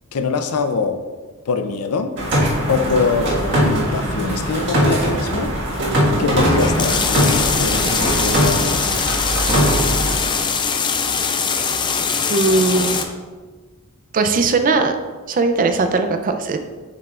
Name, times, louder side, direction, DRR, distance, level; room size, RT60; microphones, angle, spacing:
voice 1, 0.1-1.0 1.5-2.2 2.7-5.6 6.2-9.0, left 4 dB, 75° left, 8 dB, 0.5 m, -23 dB
sound 1, 2.2-10.1, equal, 55° right, 1.6 m, -20 dB
sound 2, 6.5-13.0, left 5 dB, 20° left, 0.4 m, -22 dB
voice 2, 12.3-13.0 14.1-15.0 15.3-16.6, right 3 dB, 40° right, 7 dB, 0.5 m, -18 dB
7.7 x 5.6 x 2.4 m, 1.4 s
head